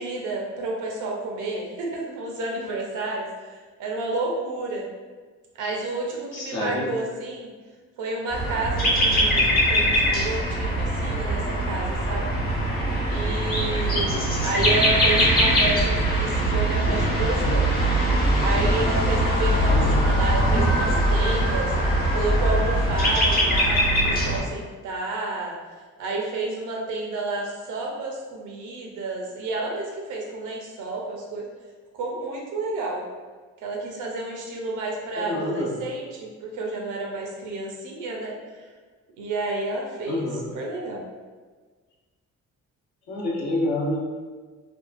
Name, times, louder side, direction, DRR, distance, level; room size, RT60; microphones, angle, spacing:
voice 1, 0.0-4.9 5.6-7.5 8.0-12.3 13.1-17.7 18.4-21.7 22.1-25.6 26.0-31.5 31.9-33.0 33.6-38.4 39.2-40.2 40.5-41.0, right 2 dB, 85° right, -1 dB, 0.6 m, -30 dB
voice 2, 6.3-6.9 19.7-20.0 35.2-35.7 40.1-40.4 43.1-44.0, left 1 dB, 60° left, -5 dB, 0.9 m, -27 dB
sound 1, 8.3-24.4, equal, 30° left, 0.9 m, -22 dB
2.7 x 2.3 x 2.4 m, 1.4 s
cardioid pair, 90°, 30 cm